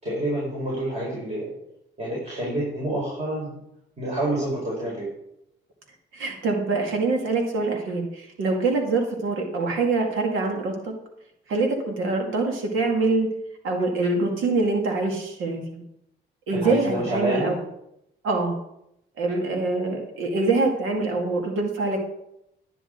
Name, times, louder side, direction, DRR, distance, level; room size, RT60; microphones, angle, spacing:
voice 1, 0.0-1.5 2.0-3.5 4.0-5.1 16.5-17.6, right 1 dB, 35° right, -5 dB, 4.8 m, -28 dB
voice 2, 6.1-10.9 11.5-13.3 13.6-15.8 16.5-17.6 18.2-18.6 19.2-22.0, right 3 dB, 85° right, 2 dB, 2.2 m, -24 dB
10.5 x 9.9 x 3.8 m, 0.80 s
cardioid pair, 90°, 20 cm